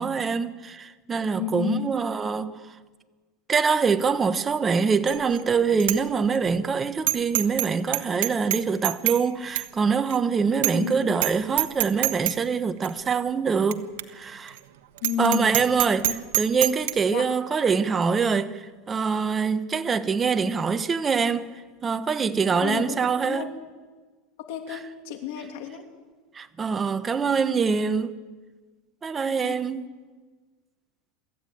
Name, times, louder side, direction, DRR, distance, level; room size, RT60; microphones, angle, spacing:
voice 1, 0.0-2.7 3.5-13.8 14.1-14.6 15.2-16.1 16.3-21.5 21.8-23.5 24.7-24.8 26.3-28.2 29.0-29.9, right 5 dB, 20° right, 1.0 m, -24 dB
voice 2, 1.3-1.9 10.7-11.2 15.0-15.6 16.0-16.1 17.1-17.3 22.6-23.0 23.2-23.5 24.5-25.9 29.3-29.6, left 8 dB, 65° left, 2.8 m, -31 dB
Bicycle bell, 5.1-5.4 5.8-6.0 6.4-6.5 7.1-7.7 7.9-9.2 9.6-9.7 10.1-10.2 10.6-10.9 11.2-11.3 11.6-12.4 12.8-12.9 13.7-13.8 14.0-14.1 14.5-14.6 15.0-16.9, right 16 dB, 75° right, 1.3 m, -25 dB
25.0 x 14.5 x 9.2 m
supercardioid pair, 145°, 0 cm